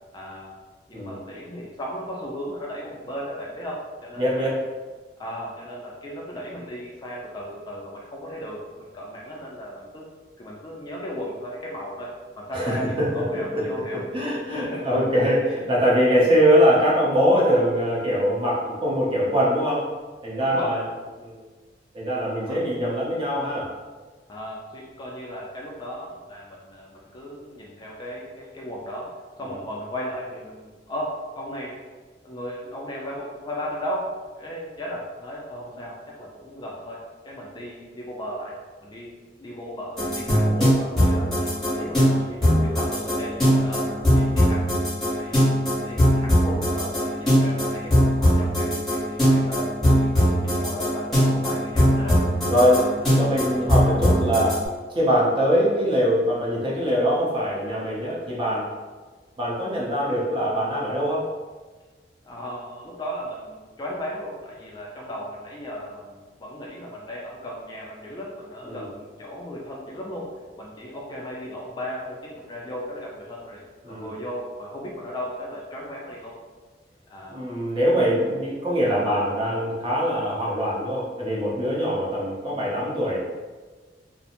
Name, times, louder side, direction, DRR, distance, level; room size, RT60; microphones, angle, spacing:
voice 1, 0.1-0.5 0.9-4.6 5.2-10.1 10.4-12.1 12.4-14.0 14.4-14.9 20.4-20.8 22.4-22.6 24.3-29.1 29.4-31.8 32.2-34.1 34.4-38.5 38.8-39.1 39.4-43.8 44.1-44.7 45.1-52.2 62.2-70.3 70.6-73.6 73.9-76.3 77.1-77.4, equal, 25° left, -3 dB, 0.3 m, -36 dB
voice 2, 4.2-4.6 12.5-13.2 13.5-19.9 20.2-20.8 21.2-21.4 21.9-23.7 52.4-52.9 53.2-54.6 54.9-58.7 59.4-61.2 68.6-68.9 73.8-74.1 77.3-83.2, equal, 30° right, -5 dB, 0.6 m, -22 dB
sound 1, 40.0-54.6, equal, ahead, 0.8 m, -20 dB
2.4 x 2.0 x 2.8 m, 1.3 s
head